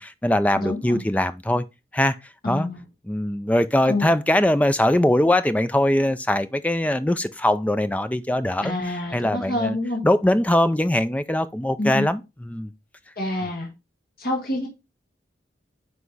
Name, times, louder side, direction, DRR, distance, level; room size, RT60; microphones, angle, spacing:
voice 1, 0.0-1.6 1.9-2.2 2.4-2.7 3.1-8.8 9.1-9.7 10.0-12.7, left 1 dB, 10° left, 0.4 m, -21 dB
voice 2, 0.5-1.0 2.4-2.8 3.8-4.1 8.6-10.0 11.8-12.1 13.2-13.7 14.2-14.7, left 1 dB, 55° left, 1.7 m, -27 dB
9.4 x 3.3 x 4.0 m
head